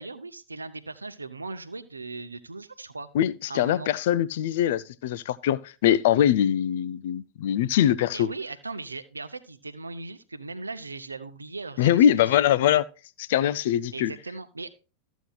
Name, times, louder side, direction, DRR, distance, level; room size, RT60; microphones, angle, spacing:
voice 1, 0.0-3.1 3.5-3.9 8.1-12.5 13.9-14.7, right 3 dB, 80° right, 0.7 m, -38 dB
voice 2, 3.1-8.3 11.8-12.8 13.2-14.1, left 10 dB, 55° left, 0.4 m, -22 dB
14.0 x 8.0 x 2.3 m
figure-of-eight pair, 90°, 0 cm